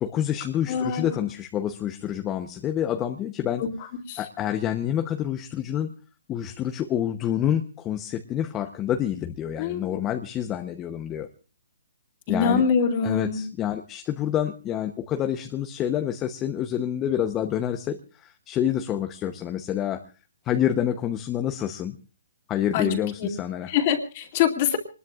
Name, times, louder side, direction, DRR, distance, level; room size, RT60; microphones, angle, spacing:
voice 1, 0.0-3.6 4.2-5.9 6.3-11.3 12.3-12.6 13.0-20.0 20.4-22.0 22.5-23.7, left 10 dB, 15° left, 6 dB, 0.8 m, -27 dB
voice 2, 0.7-1.1 3.6-3.7 4.1-4.2 9.6-10.0 12.3-13.4 22.7-22.9 23.2-23.3 23.7-24.8, left 7 dB, 35° left, 5 dB, 2.5 m, -24 dB
26.0 x 20.5 x 2.4 m, 0.35 s
hypercardioid pair, 160°, 0 cm